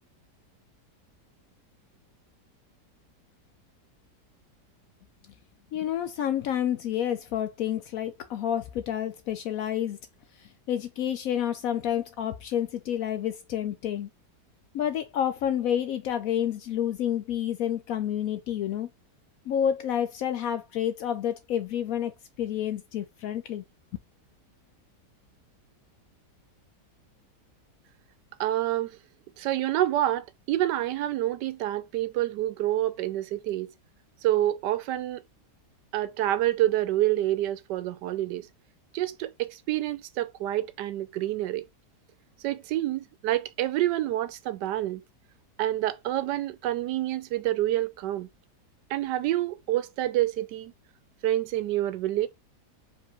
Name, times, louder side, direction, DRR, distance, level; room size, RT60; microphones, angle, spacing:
voice 1, 5.7-10.0 10.4-14.1 14.7-18.9 19.5-22.1 22.4-23.6, left 10 dB, 70° left, 0.8 m, -29 dB
voice 2, 28.4-28.9 29.4-33.7 34.2-35.2 35.9-38.5 38.9-41.6 42.4-45.0 45.6-48.3 48.9-50.7 51.2-52.3, right 14 dB, 80° right, 1.2 m, -27 dB
4.8 x 3.6 x 3.0 m
omnidirectional pair, 1.8 m